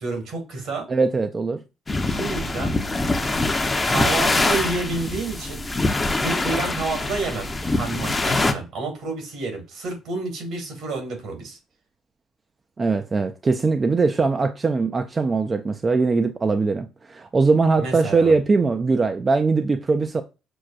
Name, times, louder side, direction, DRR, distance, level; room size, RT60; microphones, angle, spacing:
voice 1, 0.0-0.9 2.0-2.8 3.8-5.6 6.2-11.6 17.8-18.3, right 3 dB, 70° right, 1.7 m, -29 dB
voice 2, 0.9-1.6 12.8-20.2, right 4 dB, 30° right, 0.4 m, -21 dB
sound 1, 1.9-8.5, left 2 dB, 20° left, 0.6 m, -24 dB
6.1 x 2.2 x 2.3 m
cardioid pair, 85°, 0 cm